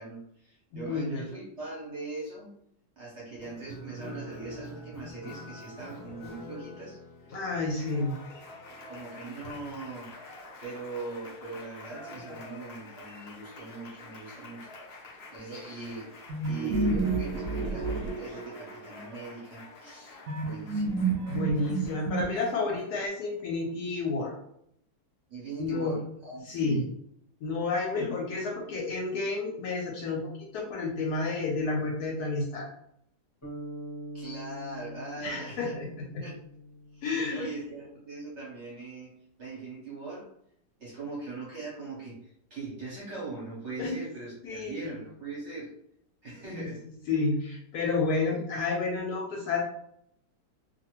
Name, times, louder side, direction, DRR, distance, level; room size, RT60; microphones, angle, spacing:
voice 1, 0.0-2.5 3.0-7.3 8.7-10.1 10.6-21.3 25.3-26.9 34.1-35.8 36.2-36.4 36.9-39.1 39.4-40.3 40.8-45.7 46.2-46.8, right 3 dB, 50° right, -6 dB, 0.9 m, -41 dB
voice 2, 0.7-1.2 7.3-8.1 21.3-24.4 25.6-26.0 26.5-26.8 27.4-30.2 30.5-32.7 35.2-35.9 36.1-36.2 37.0-37.5 43.8-43.9 44.4-44.9 46.5-46.7 47.1-49.6, left 3 dB, 70° left, -1 dB, 1.0 m, -30 dB
Applause, 3.4-23.1, left 2 dB, 90° left, 0.5 m, -47 dB
sound 1, 16.3-18.9 20.3-22.7, right 3 dB, 90° right, 0.7 m, -30 dB
sound 2, 33.4-37.7, right 1 dB, 15° left, 0.6 m, -43 dB
2.6 x 2.5 x 2.9 m, 0.72 s
omnidirectional pair, 2.0 m